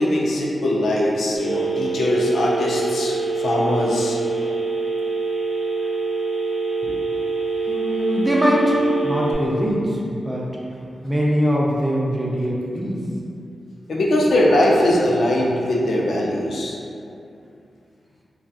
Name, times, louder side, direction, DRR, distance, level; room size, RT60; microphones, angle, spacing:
voice 1, 0.0-4.2 6.8-7.0 13.9-16.8, left 1 dB, 75° left, -3 dB, 0.4 m, -21 dB
Telephone, 1.4-9.3, right 3 dB, 85° right, 0.5 m, -25 dB
voice 2, 7.7-10.5 11.0-13.0, equal, 15° right, -4 dB, 0.4 m, -22 dB
2.6 x 2.2 x 2.3 m, 2.6 s
wide cardioid pair, 85°, 0 cm